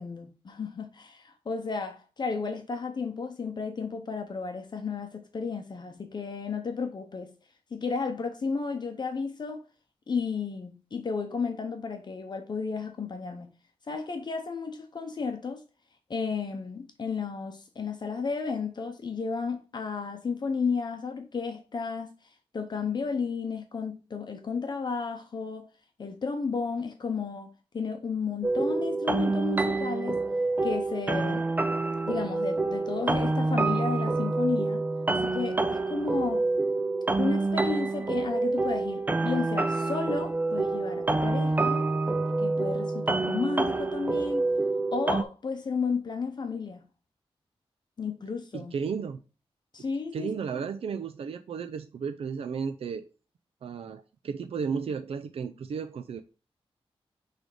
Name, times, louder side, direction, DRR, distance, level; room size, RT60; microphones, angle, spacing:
voice 1, 0.0-7.3 7.7-9.6 10.1-13.5 13.9-15.6 16.1-22.1 22.5-25.7 26.0-30.2 30.6-31.4 32.1-34.8 35.1-36.5 37.2-41.9 42.4-44.5 44.9-46.8 48.0-48.7 49.7-50.6, left 5 dB, 45° left, 0.8 m, -33 dB
sound 1, 28.4-45.2, right 3 dB, 15° right, 0.4 m, -27 dB
voice 2, 48.5-49.2 50.1-53.0 53.6-56.2, right 6 dB, 75° right, 0.5 m, -34 dB
6.2 x 3.4 x 4.8 m
wide cardioid pair, 150°, 10 cm